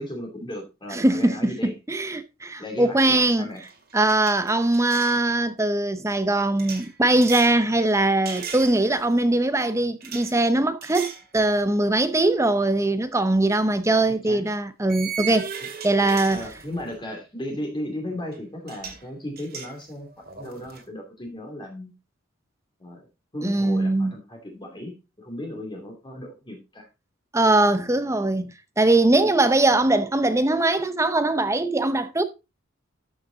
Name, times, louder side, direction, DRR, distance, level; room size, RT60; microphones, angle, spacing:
voice 1, 0.0-1.7 2.6-3.6 14.2-14.4 16.3-21.9 22.8-23.1 23.3-26.9, left 1 dB, 20° left, 2.6 m, -36 dB
voice 2, 0.9-3.5 3.9-15.5 15.8-16.5 23.4-24.1 27.3-28.5 28.8-32.2, right 2 dB, 15° right, 0.7 m, -21 dB
sound 1, 3.1-3.3 3.6-5.2 6.6-7.6 8.3-9.1 10.0-10.3 10.8-11.3 11.7-11.9 13.4-13.5 14.9-17.0 18.3-18.4 18.7-19.0 19.4-20.8, right 7 dB, 50° right, 2.2 m, -37 dB
13.0 x 6.5 x 3.9 m
head